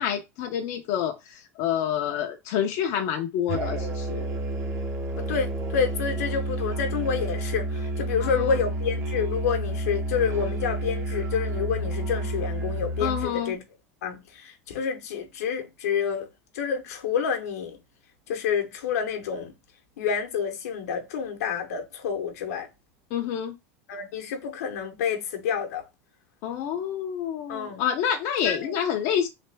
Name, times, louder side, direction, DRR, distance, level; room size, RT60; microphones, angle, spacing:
voice 1, 0.0-4.3 8.2-8.5 13.0-13.5 23.1-23.5 26.4-29.3, left 9 dB, 55° left, 0.5 m, -28 dB
Musical instrument, 3.5-13.4, right 1 dB, 35° right, 0.8 m, -30 dB
voice 2, 5.2-13.6 14.0-16.3 16.5-17.8 18.3-19.5 20.0-22.7 23.9-25.8 27.5-27.8 28.4-28.8, left 7 dB, 85° left, 0.9 m, -28 dB
3.3 x 2.4 x 3.3 m
supercardioid pair, 105°, 8 cm